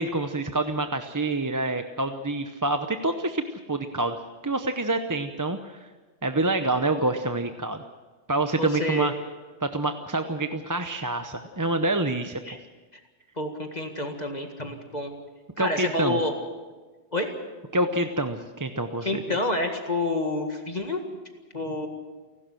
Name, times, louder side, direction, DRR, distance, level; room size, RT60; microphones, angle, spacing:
voice 1, 0.0-4.2 4.4-5.8 6.2-7.8 8.3-9.1 9.6-12.4 15.6-16.2 17.7-19.2, right 2 dB, 20° right, 7 dB, 0.7 m, -27 dB
voice 2, 8.6-9.1 12.4-12.6 12.9-13.0 13.4-15.1 15.6-16.3 17.1-17.3 19.0-21.0 21.5-21.9, left 2 dB, 40° left, 4 dB, 2.0 m, -28 dB
29.5 x 12.0 x 7.7 m, 1.3 s
omnidirectional pair, 1.2 m